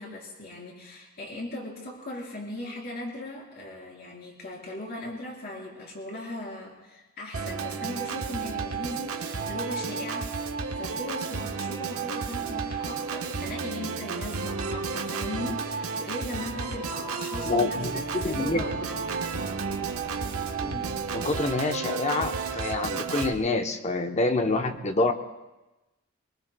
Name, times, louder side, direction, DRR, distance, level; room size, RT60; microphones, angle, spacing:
voice 1, 0.0-10.3 10.7-19.4, left 1 dB, 45° left, -2 dB, 3.7 m, -38 dB
Organ, 7.3-23.3, right 5 dB, 90° right, 1.1 m, -32 dB
voice 2, 17.5-18.6 20.6-20.8 21.1-25.1, left 3 dB, 30° left, 6 dB, 0.8 m, -27 dB
23.5 x 23.0 x 2.2 m, 1.1 s
head